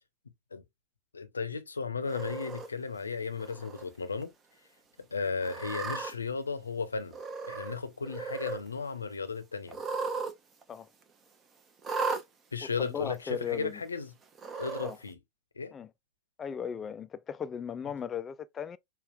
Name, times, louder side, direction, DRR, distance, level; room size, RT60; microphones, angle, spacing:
voice 1, 1.1-4.3 5.0-7.2 7.5-9.8 12.5-14.1 14.5-15.2 15.6-15.7, left 5 dB, 75° left, 0.6 m, -35 dB
Cat, 2.1-2.7 3.4-3.8 4.2-4.3 5.4-6.1 7.1-7.8 8.0-8.6 9.7-10.3 10.6-10.7 11.8-12.2 13.1-13.2 14.3-14.9, right 4 dB, 20° right, 0.7 m, -35 dB
voice 2, 12.6-13.8 14.8-15.0 15.7-15.9 16.4-18.8, left 8 dB, 20° left, 0.3 m, -37 dB
5.5 x 2.3 x 2.4 m
figure-of-eight pair, 90°, 0 cm